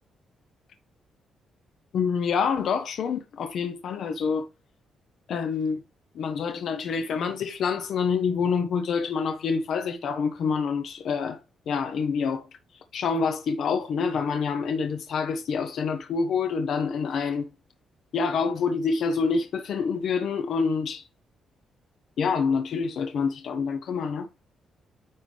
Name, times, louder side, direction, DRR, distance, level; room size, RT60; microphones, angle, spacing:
voice 1, 1.9-4.5 5.3-5.8 6.1-11.4 11.7-12.4 12.9-17.5 18.1-21.0 22.2-24.3, left 5 dB, 55° left, 0.9 m, -27 dB
9.5 x 3.8 x 3.4 m
cardioid pair, 180°, 0 cm